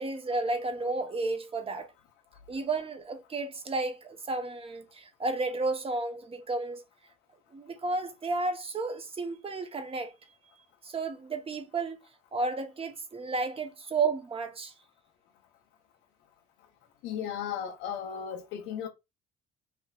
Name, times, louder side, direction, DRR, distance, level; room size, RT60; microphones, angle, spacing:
voice 1, 0.0-1.9 2.5-6.8 7.5-10.1 10.8-12.0 12.3-14.7, right 3 dB, 30° right, 0.8 m, -32 dB
voice 2, 17.0-18.9, left 8 dB, 80° left, 0.6 m, -35 dB
3.3 x 2.9 x 2.3 m
supercardioid pair, 80°, 20 cm